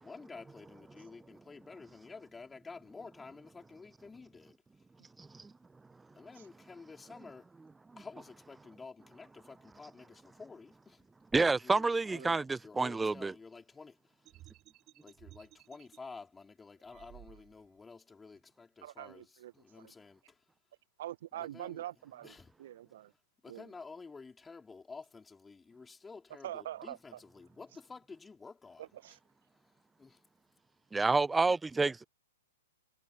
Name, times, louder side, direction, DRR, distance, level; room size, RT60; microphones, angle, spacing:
voice 1, 0.0-4.5 6.2-7.5 8.0-11.0 11.6-14.0 15.0-19.3 19.5-20.2 21.5-21.8 22.2-22.5 23.4-28.8 30.0-30.2, left 4 dB, 10° left, 4.0 m, -51 dB
voice 2, 5.2-5.5 7.9-8.0 11.3-13.3 30.9-32.1, right 3 dB, 10° right, 0.8 m, -29 dB
voice 3, 12.1-12.4 18.8-19.9 21.0-23.1 23.5-23.7 26.4-27.2 28.8-29.2, right 13 dB, 55° right, 1.4 m, -44 dB
sound 1, 14.2-16.0 16.9-17.8, right 16 dB, 30° right, 5.4 m, -57 dB
figure-of-eight pair, 110°, 0 cm